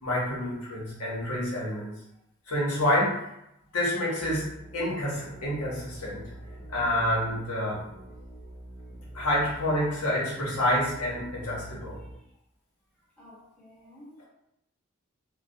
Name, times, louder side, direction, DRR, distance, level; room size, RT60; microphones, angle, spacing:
voice 1, 0.0-1.9 2.5-3.2 3.7-4.5 4.7-6.3 6.7-7.8 9.1-12.0, left 1 dB, 85° left, -5 dB, 0.8 m, -28 dB
sound 1, 4.2-12.1, right 1 dB, 50° left, 0.7 m, -46 dB
voice 2, 6.9-7.4 12.0-12.3 13.2-14.3, left 1 dB, 5° left, -9 dB, 0.7 m, -52 dB
2.2 x 2.2 x 2.6 m, 0.83 s
head